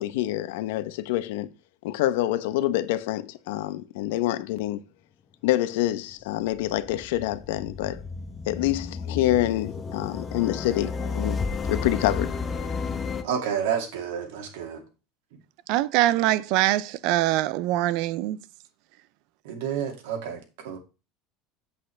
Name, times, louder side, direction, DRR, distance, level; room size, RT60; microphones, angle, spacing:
voice 1, 0.0-1.5 1.8-4.8 5.4-8.0 8.5-11.4 11.7-12.4, left 14 dB, 85° left, 0.9 m, -26 dB
sound 1, 6.0-13.2, left 5 dB, 20° left, 0.9 m, -32 dB
voice 2, 13.2-14.8 19.4-20.8, right 8 dB, 85° right, 2.4 m, -30 dB
voice 3, 15.7-18.4, right 15 dB, 60° right, 0.5 m, -23 dB
8.1 x 8.0 x 3.4 m
cardioid pair, 160°, 0 cm